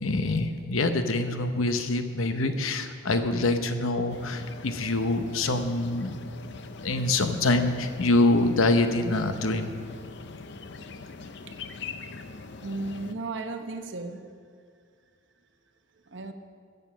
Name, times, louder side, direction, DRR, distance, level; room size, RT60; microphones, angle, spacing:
voice 1, 0.0-6.2 6.8-9.7, left 2 dB, 90° left, 8 dB, 0.9 m, -25 dB
sound 1, 4.1-13.1, left 4 dB, 55° left, 0.6 m, -42 dB
voice 2, 12.6-14.3 16.1-16.3, right 3 dB, 65° right, 7 dB, 0.9 m, -34 dB
14.5 x 8.0 x 6.2 m, 2.2 s
head